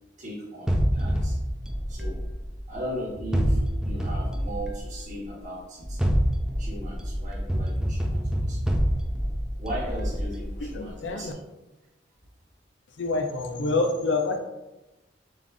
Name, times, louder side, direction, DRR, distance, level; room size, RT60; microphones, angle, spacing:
voice 1, 0.2-1.4 1.9-2.2 2.7-6.0 6.6-8.7 9.6-11.4, equal, 45° right, -6 dB, 1.5 m, -37 dB
sound 1, 0.7-2.8 3.3-5.1 5.8-10.9, equal, 5° right, 0.3 m, -27 dB
voice 2, 10.6-11.3 13.0-14.4, left 3 dB, 70° left, 6 dB, 0.5 m, -27 dB
6.9 x 2.5 x 2.6 m, 1.0 s
head